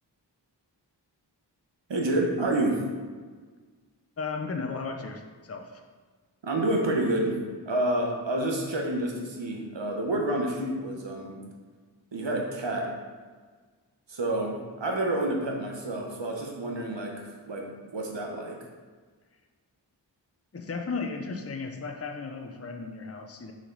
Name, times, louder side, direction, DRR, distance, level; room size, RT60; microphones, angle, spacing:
voice 1, 1.9-2.8 6.4-11.4 12.1-12.9 14.1-18.6, right 1 dB, 90° right, 1 dB, 1.1 m, -29 dB
voice 2, 4.2-5.8 20.5-23.5, left 4 dB, 35° left, 4 dB, 0.6 m, -35 dB
6.5 x 4.9 x 3.9 m, 1.5 s
wide cardioid pair, 60°, 43 cm